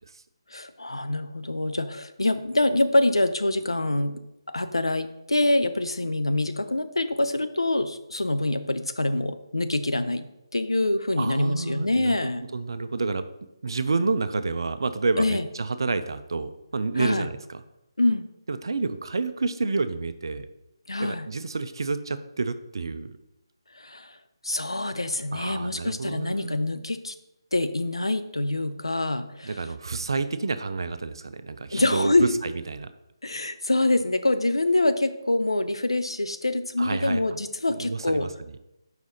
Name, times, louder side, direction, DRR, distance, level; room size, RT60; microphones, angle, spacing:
voice 1, 0.5-4.2 4.5-10.3 10.5-12.4 15.2-15.5 17.0-17.3 18.0-18.3 20.9-21.3 23.7-24.2 24.4-27.1 27.5-29.6 31.7-32.3 33.2-38.3, left 2 dB, 80° left, 10 dB, 0.5 m, -25 dB
voice 2, 11.2-12.2 12.5-13.3 13.6-17.6 18.5-20.5 21.0-23.1 25.3-26.6 29.4-32.9 36.8-37.2 37.7-38.3, right 3 dB, 60° right, 11 dB, 0.4 m, -29 dB
4.9 x 4.8 x 4.1 m, 0.89 s
figure-of-eight pair, 150°, 3 cm